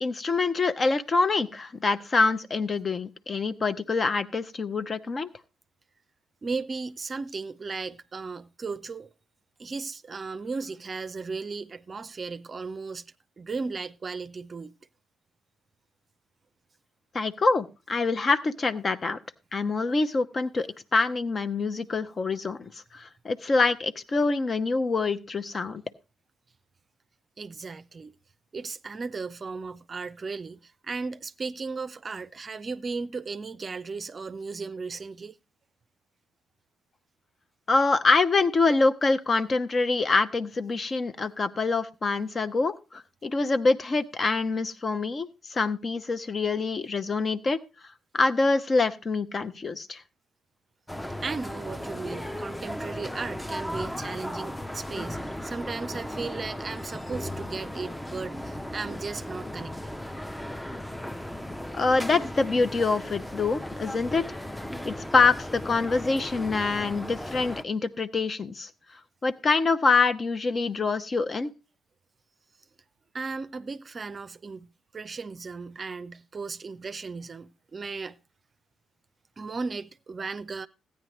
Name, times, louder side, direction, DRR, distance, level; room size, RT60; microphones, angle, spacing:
voice 1, 0.0-5.3 17.1-19.2 19.5-25.8 37.7-47.6 48.1-50.0 61.7-64.4 64.8-68.7 69.2-71.5, left 3 dB, 40° left, 0.8 m, -25 dB
voice 2, 6.4-9.1 9.6-14.7 27.4-28.1 28.5-35.4 51.2-60.0 73.1-74.7 74.9-78.2 79.4-80.7, right 4 dB, 40° right, 0.5 m, -36 dB
sound 1, 50.9-67.6, left 1 dB, 10° left, 0.6 m, -36 dB
15.0 x 9.5 x 3.1 m
hypercardioid pair, 45°, 0 cm